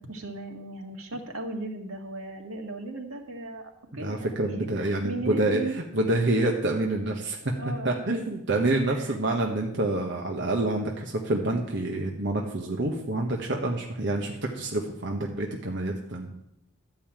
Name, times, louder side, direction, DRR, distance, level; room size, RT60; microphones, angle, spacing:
voice 1, 0.0-3.6 3.9-5.8 7.6-8.3 8.9-9.2, right 2 dB, 80° right, 3 dB, 1.9 m, -37 dB
voice 2, 3.9-7.4 7.8-16.3, right 2 dB, 55° right, 1 dB, 1.2 m, -27 dB
12.5 x 5.5 x 8.8 m, 0.82 s
head